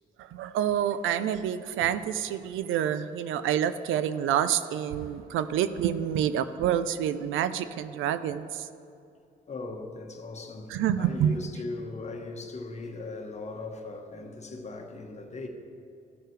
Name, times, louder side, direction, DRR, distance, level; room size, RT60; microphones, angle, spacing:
voice 1, 0.2-8.7 10.7-11.4, right 10 dB, 85° right, 0.5 m, -28 dB
voice 2, 9.5-15.5, left 3 dB, 35° left, 1.1 m, -39 dB
15.0 x 6.6 x 3.2 m
cardioid pair, 90°, 20 cm